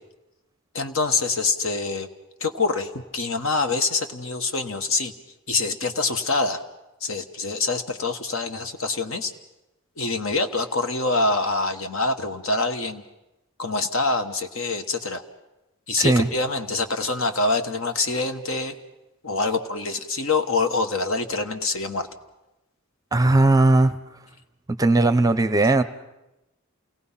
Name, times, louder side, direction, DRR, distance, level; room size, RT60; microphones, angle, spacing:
voice 1, 0.7-2.1 2.4-5.1 5.5-6.6 7.0-9.3 10.0-13.0 13.6-15.2 15.9-18.7 19.2-22.1, left 3 dB, 65° left, 7 dB, 1.4 m, -25 dB
voice 2, 16.0-16.3 23.1-24.0 24.8-25.8, right 2 dB, 15° right, 11 dB, 0.7 m, -18 dB
28.5 x 18.5 x 5.7 m, 0.97 s
head